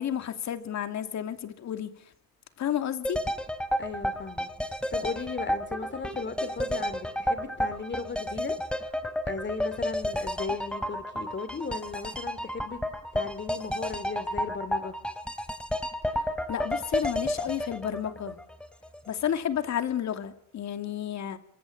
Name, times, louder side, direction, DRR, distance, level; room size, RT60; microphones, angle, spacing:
voice 1, 0.0-1.9 2.6-3.2 16.5-18.4 19.1-21.4, left 10 dB, 65° left, 2.6 m, -31 dB
sound 1, 3.0-19.0 19.3-19.4, equal, 5° left, 2.8 m, -31 dB
voice 2, 3.8-4.5 4.9-8.9 9.3-12.8 13.1-14.9, left 5 dB, 35° left, 2.7 m, -36 dB
24.5 x 23.5 x 8.4 m
cardioid pair, 90°, 30 cm